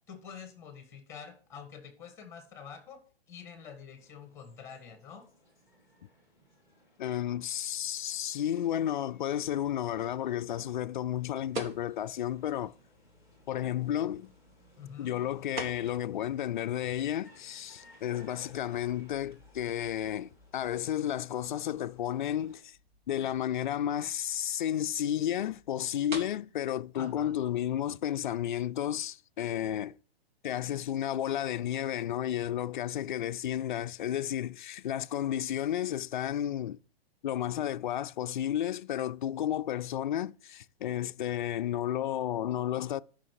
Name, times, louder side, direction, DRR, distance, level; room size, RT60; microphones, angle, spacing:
voice 1, 0.1-3.0 3.3-5.2 14.8-15.1 27.0-27.3, left 7 dB, 10° left, 1.5 m, -47 dB
sound 1, 3.9-22.6, equal, 10° right, 2.4 m, -62 dB
voice 2, 7.0-12.7 13.5-14.3 15.0-22.8 23.1-30.0 30.4-36.8 37.2-43.0, left 11 dB, 50° left, 0.4 m, -32 dB
sound 2, 11.5-28.4, right 2 dB, 50° right, 2.3 m, -49 dB
sound 3, 22.6-25.8, left 2 dB, 25° right, 3.4 m, -66 dB
12.5 x 5.9 x 4.7 m
hypercardioid pair, 165°, 31 cm